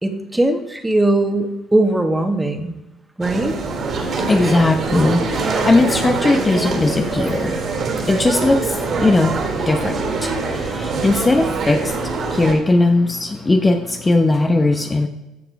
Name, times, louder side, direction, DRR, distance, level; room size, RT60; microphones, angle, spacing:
voice 1, 0.0-2.8 3.2-3.5, right 1 dB, 10° right, 6 dB, 1.6 m, -19 dB
sound 1, 3.2-12.5, right 4 dB, 50° right, 2.7 m, -24 dB
voice 2, 3.9-15.1, left 2 dB, 25° left, 5 dB, 1.1 m, -19 dB
15.0 x 6.0 x 4.8 m, 1.0 s
hypercardioid pair, 65°, 0 cm